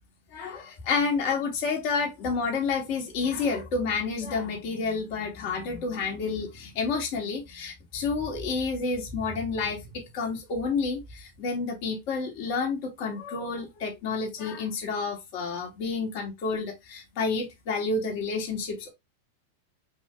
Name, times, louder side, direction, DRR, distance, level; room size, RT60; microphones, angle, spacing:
voice 1, 0.3-18.9, left 4 dB, 55° left, 1.9 m, -30 dB
4.7 x 2.8 x 3.3 m
hypercardioid pair, 120°, 0 cm